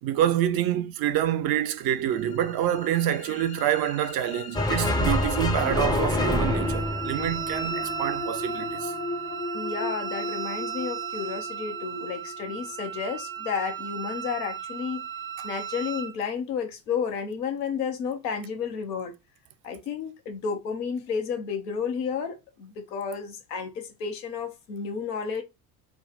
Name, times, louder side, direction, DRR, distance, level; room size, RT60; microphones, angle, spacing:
voice 1, 0.0-8.9 15.4-15.5, right 11 dB, 50° right, 0.6 m, -27 dB
sound 1, 1.8-13.8, left 4 dB, 50° left, 0.8 m, -37 dB
sound 2, 4.5-8.0, left 1 dB, 10° left, 0.6 m, -27 dB
Wind instrument woodwind instrument, 6.2-16.1, right 8 dB, 85° right, 1.1 m, -35 dB
voice 2, 9.5-15.0 15.4-19.1 19.6-25.4, left 6 dB, 75° left, 1.0 m, -32 dB
3.4 x 2.1 x 4.0 m
figure-of-eight pair, 55°, 49 cm